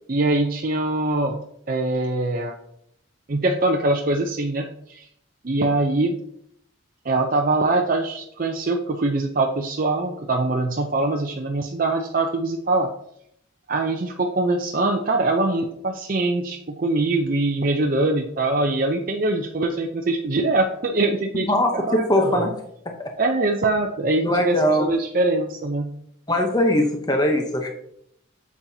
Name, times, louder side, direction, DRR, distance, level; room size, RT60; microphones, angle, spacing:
voice 1, 0.1-1.4 1.7-2.6 3.3-5.1 5.4-6.2 7.0-12.9 13.7-22.5 23.2-25.9, right 2 dB, 45° right, 2 dB, 0.5 m, -23 dB
voice 2, 22.1-22.5 24.2-24.9 26.3-27.7, left 1 dB, 20° left, 3 dB, 0.8 m, -20 dB
8.7 x 7.3 x 2.7 m, 0.73 s
head